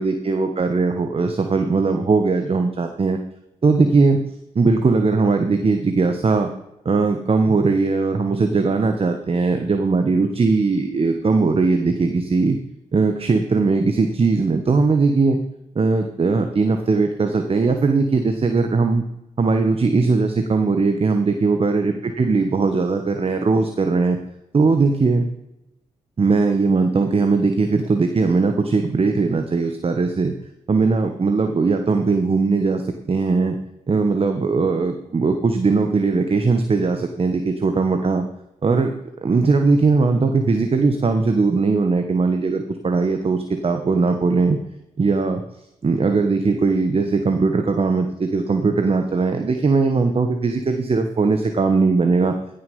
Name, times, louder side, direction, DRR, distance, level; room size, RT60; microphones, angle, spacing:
voice 1, 0.0-3.2 3.6-4.2 4.5-6.5 6.8-12.6 12.9-15.4 15.7-19.0 19.4-24.2 24.5-25.3 26.2-30.3 30.7-33.6 33.9-38.2 38.6-38.9 39.2-44.6 45.0-45.4 45.8-52.3, right 4 dB, 40° right, 6 dB, 1.2 m, -19 dB
15.5 x 6.9 x 5.4 m, 0.88 s
supercardioid pair, 55°, 14 cm